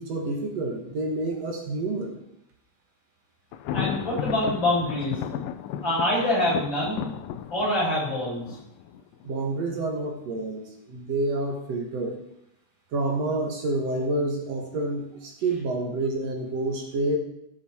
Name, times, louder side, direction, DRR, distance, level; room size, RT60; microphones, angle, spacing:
voice 1, 0.0-2.2 9.2-12.2 12.9-17.2, right 2 dB, 55° right, 2 dB, 2.1 m, -28 dB
Thunder, 3.5-9.3, left 9 dB, 80° left, 2.1 m, -34 dB
voice 2, 3.7-5.2 5.8-7.0 7.5-8.5, left 1 dB, 30° left, -6 dB, 5.4 m, -25 dB
15.0 x 7.8 x 4.4 m, 0.78 s
omnidirectional pair, 4.1 m